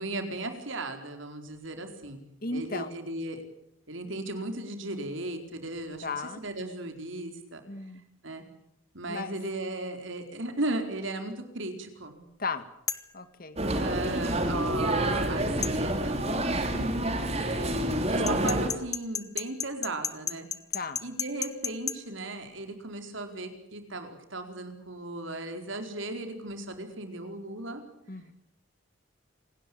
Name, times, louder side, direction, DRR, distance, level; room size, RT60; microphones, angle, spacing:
voice 1, 0.0-2.2 2.5-3.4 3.9-7.6 8.2-8.4 8.9-12.2 13.8-16.2 17.4-17.7 18.1-20.5 21.0-27.8, right 2 dB, 70° right, 6 dB, 4.5 m, -36 dB
voice 2, 2.4-3.0 6.0-6.4 7.7-8.0 9.1-9.3 12.4-12.7 13.1-13.6 16.2-16.9 20.7-21.0 28.1-28.3, left 3 dB, 45° left, 11 dB, 2.0 m, -35 dB
sound 1, 12.9-13.1 15.6-15.8 18.3-22.0, left 6 dB, 15° left, 1.1 m, -32 dB
sound 2, 13.6-18.7, right 1 dB, 30° right, 2.9 m, -28 dB
27.5 x 19.0 x 8.8 m, 0.76 s
head